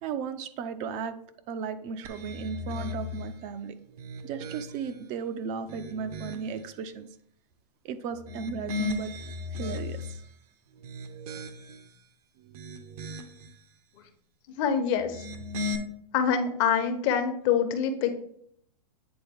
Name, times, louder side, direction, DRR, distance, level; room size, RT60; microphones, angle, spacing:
voice 1, 0.0-1.2 1.5-3.8 4.2-7.1 7.8-9.2 9.5-10.2, right 6 dB, 35° right, 10 dB, 0.6 m, -35 dB
sound 1, 2.0-3.3 3.9-5.0 5.5-6.6 8.1-10.2 10.7-11.9 12.4-13.5 15.0-15.8, left 3 dB, 65° right, 1.0 m, -37 dB
voice 2, 14.5-15.2 16.1-18.1, left 7 dB, 45° left, 7 dB, 1.0 m, -25 dB
8.7 x 3.7 x 3.5 m, 0.66 s
hypercardioid pair, 130°, 21 cm